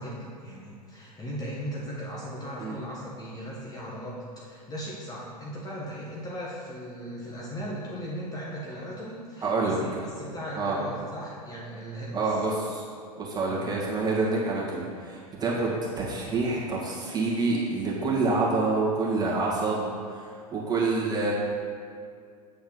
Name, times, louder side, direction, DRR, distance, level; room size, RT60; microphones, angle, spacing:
voice 1, 0.0-12.4 13.5-13.6 15.6-15.7, equal, 20° left, -5 dB, 1.3 m, -38 dB
voice 2, 9.4-9.8 10.6-10.8 12.1-12.8 13.2-20.3 20.5-21.3, right 3 dB, 20° right, -5 dB, 2.1 m, -27 dB
8.0 x 4.2 x 5.6 m, 2.2 s
figure-of-eight pair, 90°, 20 cm